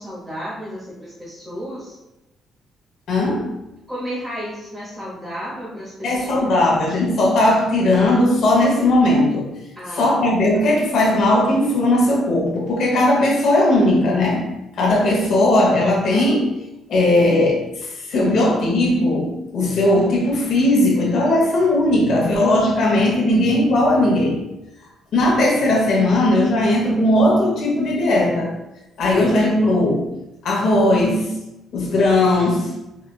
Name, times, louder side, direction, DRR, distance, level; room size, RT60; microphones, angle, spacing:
voice 1, 0.0-1.9 3.9-6.6 9.7-10.1, equal, 10° right, -9 dB, 0.8 m, -32 dB
voice 2, 3.1-3.5 6.0-9.5 9.9-14.5 14.8-16.5 16.9-24.4 25.1-28.5 29.0-30.1 30.4-31.4 31.7-32.7, left 1 dB, 60° left, -2 dB, 0.9 m, -18 dB
4.1 x 2.3 x 2.3 m, 0.94 s
cardioid pair, 170°, 0 cm